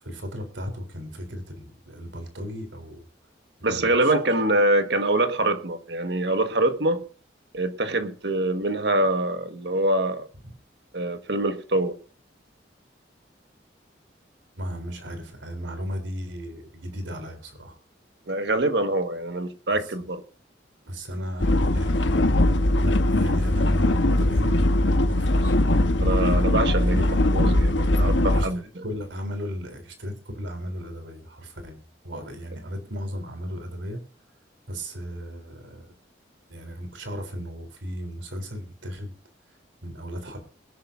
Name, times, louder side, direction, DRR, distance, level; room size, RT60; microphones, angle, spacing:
voice 1, 0.0-3.0 3.6-4.1 10.4-10.5 14.6-17.8 19.7-19.8 20.8-22.1 22.8-26.4 28.3-28.5 28.8-34.0 34.7-35.9 36.5-39.1 39.8-40.4, equal, 90° right, 3.7 m, -35 dB
voice 2, 3.6-7.0 7.5-10.3 10.9-12.0 18.3-20.2 26.0-28.8, right 1 dB, 65° right, 1.6 m, -24 dB
sound 1, 21.4-28.5, left 1 dB, 85° left, 1.2 m, -21 dB
21.5 x 11.5 x 2.7 m
head